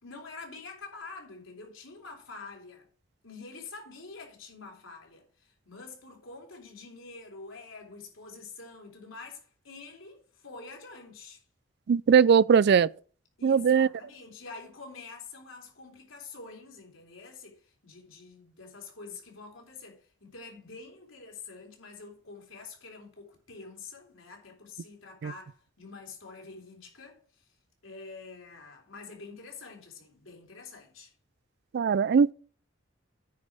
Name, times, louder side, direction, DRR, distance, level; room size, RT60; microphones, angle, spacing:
voice 1, 0.0-2.9 3.2-11.4 13.4-27.5 27.8-31.1, left 4 dB, 75° left, 3.5 m, -47 dB
voice 2, 11.9-12.9 13.4-13.9 25.2-25.3 31.7-32.3, right 6 dB, 55° right, 0.3 m, -20 dB
9.3 x 5.3 x 6.1 m
head